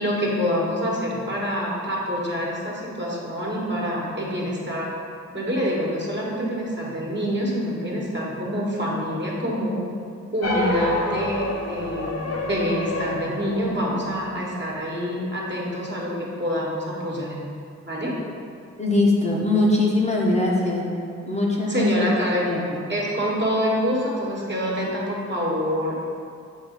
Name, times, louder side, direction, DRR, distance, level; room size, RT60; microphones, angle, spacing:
voice 1, 0.0-4.9 5.3-9.8 10.3-17.3 17.9-18.2 21.7-22.5 22.9-26.1, equal, 40° right, -5 dB, 1.4 m, -26 dB
sound 1, 10.4-15.0, left 1 dB, 55° left, 0.9 m, -28 dB
voice 2, 18.8-20.9 21.3-22.8, left 2 dB, 25° left, -4 dB, 0.9 m, -22 dB
7.2 x 2.7 x 5.2 m, 2.4 s
wide cardioid pair, 70°, 30 cm